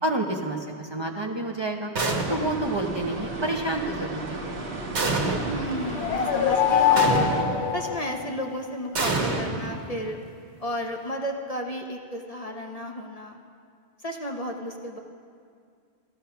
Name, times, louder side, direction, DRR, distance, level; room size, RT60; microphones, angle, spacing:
voice 1, 0.0-1.9 2.3-4.7, right 2 dB, 25° right, 1 dB, 0.9 m, -29 dB
sound 1, 2.0-2.7 5.0-5.7 7.0-7.7 9.0-10.2, right 3 dB, 90° right, 1.6 m, -27 dB
sound 2, 2.3-7.4, right 2 dB, 70° right, 1.6 m, -35 dB
voice 2, 5.4-7.3 7.7-10.2 10.6-13.4 14.0-15.0, equal, 35° left, 2 dB, 0.9 m, -33 dB
sound 3, 5.7-8.6, left 9 dB, 80° left, 1.0 m, -24 dB
13.5 x 13.5 x 5.7 m, 2.2 s
omnidirectional pair, 1.1 m